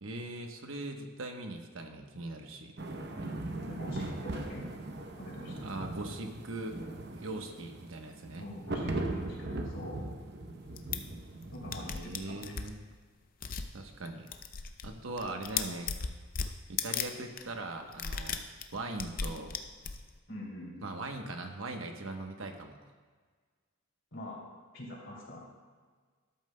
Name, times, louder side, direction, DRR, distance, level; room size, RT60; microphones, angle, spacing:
voice 1, 0.0-2.8 5.6-6.8 7.1-8.4 11.9-12.8 13.7-14.3 14.8-15.9 16.7-18.5 18.7-19.5 20.8-22.8, right 2 dB, 75° right, 4 dB, 1.0 m, -40 dB
sound 1, 2.8-11.9, right 2 dB, 50° right, 0.8 m, -39 dB
voice 2, 3.1-4.7 5.2-5.8 8.4-10.1 11.5-12.6 19.2-19.4 20.3-20.7 24.1-24.4 24.7-25.5, left 1 dB, 65° left, -3 dB, 2.8 m, -45 dB
sound 2, 10.8-11.0 11.4-11.5 11.7-12.7 13.4-13.7 14.0-14.9 15.1-17.1 17.4-17.5 17.9-20.2, left 6 dB, 45° left, 0.5 m, -35 dB
13.0 x 11.5 x 2.2 m, 1.5 s
head